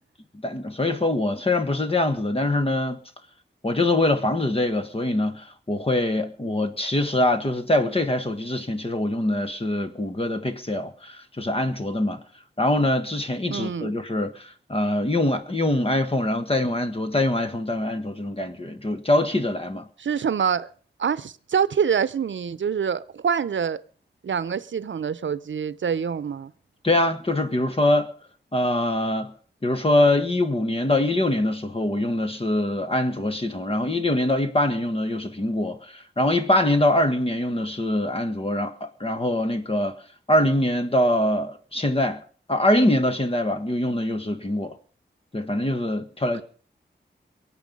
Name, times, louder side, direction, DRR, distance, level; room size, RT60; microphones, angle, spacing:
voice 1, 0.4-3.0 3.6-12.2 12.6-19.9 26.8-28.1 28.5-29.3 29.6-39.9 40.3-42.2 42.5-44.7 45.3-46.4, left 1 dB, 30° left, 1.6 m, -23 dB
voice 2, 13.5-13.9 20.0-20.7 21.0-23.8 24.2-26.5, right 7 dB, 85° right, 0.6 m, -25 dB
23.0 x 9.1 x 5.4 m
wide cardioid pair, 85°, 19 cm